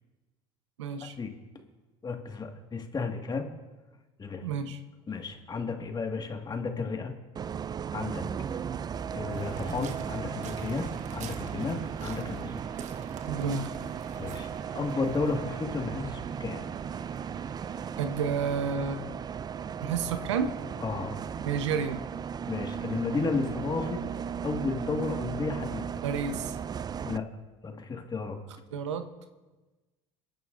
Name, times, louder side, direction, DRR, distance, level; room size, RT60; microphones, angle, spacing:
voice 1, 0.8-1.2 4.4-4.8 13.3-13.7 18.0-19.0 19.8-20.5 21.4-22.0 26.0-26.6 28.7-29.1, right 6 dB, 90° right, 8 dB, 0.9 m, -30 dB
voice 2, 2.0-3.5 4.2-4.4 5.1-7.1 7.9-8.2 9.1-12.6 14.2-14.5 14.7-16.7 20.8-21.2 22.5-24.0 24.4-25.8 27.0-27.2 27.6-28.4, left 4 dB, 30° left, 4 dB, 1.8 m, -33 dB
Bus, 7.4-27.2, right 7 dB, 30° right, 0.4 m, -36 dB
Waves surf, 9.3-18.1, right 7 dB, 55° right, 1.3 m, -47 dB
27.5 x 11.0 x 2.6 m, 1.2 s
hypercardioid pair, 75°, 15 cm